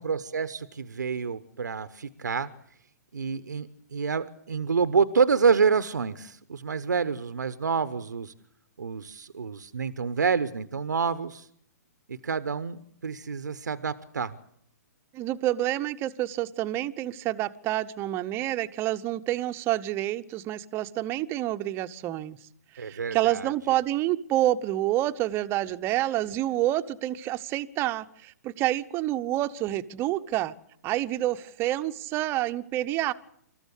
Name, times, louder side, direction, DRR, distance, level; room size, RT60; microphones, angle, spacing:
voice 1, 0.0-2.5 3.1-8.3 8.8-11.5 12.1-14.4 22.8-23.5, right 5 dB, 90° right, 13 dB, 1.0 m, -28 dB
voice 2, 15.1-22.4 22.7-30.5 30.8-33.1, right 14 dB, 25° right, 12 dB, 0.9 m, -28 dB
26.5 x 14.0 x 8.3 m, 0.70 s
hypercardioid pair, 135°, 9 cm